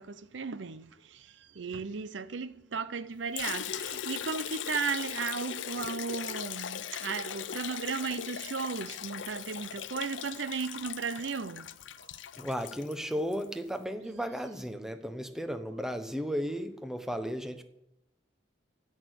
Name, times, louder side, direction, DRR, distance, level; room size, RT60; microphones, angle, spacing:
voice 1, 0.0-11.7 12.0-12.1, right 5 dB, 80° right, 0.6 m, -35 dB
Liquid, 3.4-13.5, left 9 dB, 85° left, 0.6 m, -39 dB
voice 2, 12.4-17.6, equal, 5° right, 1.0 m, -34 dB
16.0 x 6.4 x 9.2 m
head